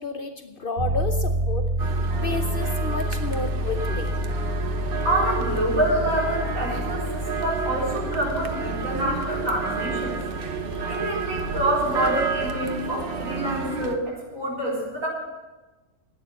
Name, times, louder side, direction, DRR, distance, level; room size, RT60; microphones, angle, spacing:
voice 1, 0.0-1.7 2.1-4.1, left 4 dB, 45° left, 6 dB, 0.9 m, -31 dB
sound 1, 0.8-12.6, equal, 90° right, 6.1 m, -29 dB
sound 2, 1.8-14.0, right 5 dB, 45° right, 1.0 m, -31 dB
voice 2, 5.0-15.1, right 1 dB, 70° right, -4 dB, 4.3 m, -27 dB
11.5 x 9.0 x 7.8 m, 1.2 s
omnidirectional pair, 1.4 m